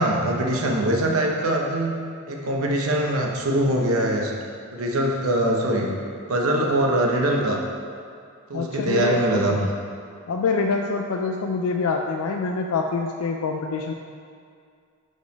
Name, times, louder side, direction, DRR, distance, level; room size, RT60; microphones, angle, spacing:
voice 1, 0.0-2.0 2.3-4.3 4.7-5.9 6.3-7.6 8.5-9.7, right 1 dB, 80° right, 0 dB, 0.8 m, -22 dB
voice 2, 8.5-9.6 10.3-13.9, left 4 dB, 85° left, 2 dB, 0.4 m, -25 dB
5.4 x 5.1 x 5.1 m, 2.3 s
head